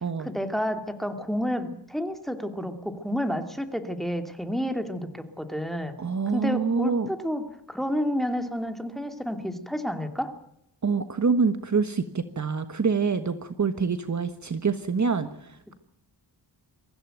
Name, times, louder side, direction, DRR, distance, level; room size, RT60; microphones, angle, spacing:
voice 1, 0.2-6.0 6.3-10.3, equal, ahead, 7 dB, 2.7 m, -30 dB
voice 2, 6.0-7.1 10.8-15.7, right 5 dB, 45° right, 10 dB, 1.4 m, -26 dB
24.0 x 15.5 x 9.2 m, 0.78 s
wide cardioid pair, 115°, 41 cm